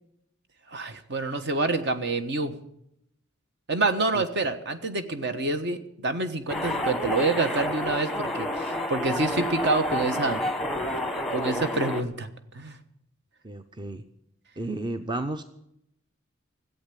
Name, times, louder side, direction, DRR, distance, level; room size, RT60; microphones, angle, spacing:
voice 1, 0.7-2.5 3.7-10.4 11.3-12.3 12.5-12.8, right 3 dB, 55° right, 9 dB, 1.3 m, -27 dB
sound 1, 6.5-12.0, left 1 dB, ahead, 1.1 m, -29 dB
voice 2, 13.4-14.0 14.6-15.4, right 2 dB, 20° right, 9 dB, 0.6 m, -32 dB
15.5 x 8.2 x 9.8 m, 0.77 s
head